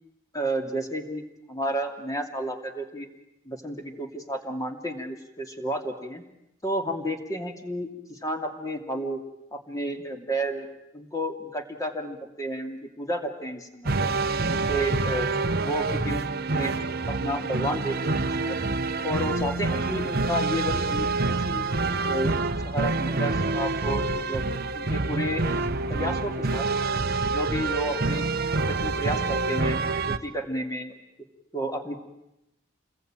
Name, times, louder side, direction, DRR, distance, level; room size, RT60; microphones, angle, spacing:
voice 1, 0.3-1.2 1.5-3.1 3.4-6.2 6.6-9.2 9.5-10.7 10.9-14.1 14.4-15.3 15.6-16.8 17.1-18.7 19.0-21.1 21.3-21.7 22.0-22.3 22.6-24.4 24.7-25.4 25.9-27.0 27.2-28.2 28.5-29.8 30.1-30.9 31.5-32.0, right 1 dB, 15° left, 4 dB, 2.8 m, -31 dB
sound 1, 13.8-30.2, right 3 dB, 50° right, 1.1 m, -27 dB
29.0 x 21.0 x 9.0 m, 0.88 s
head